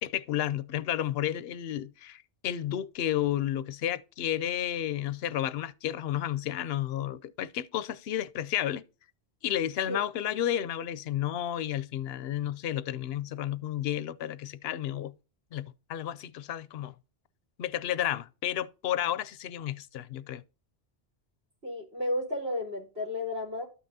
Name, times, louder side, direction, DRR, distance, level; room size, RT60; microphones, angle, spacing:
voice 1, 0.0-8.8 9.4-15.1 15.5-16.9 17.6-20.4, left 11 dB, 75° left, 0.8 m, -32 dB
voice 2, 21.6-23.7, left 1 dB, 75° right, 3.7 m, -32 dB
12.5 x 5.6 x 2.7 m
omnidirectional pair, 1.1 m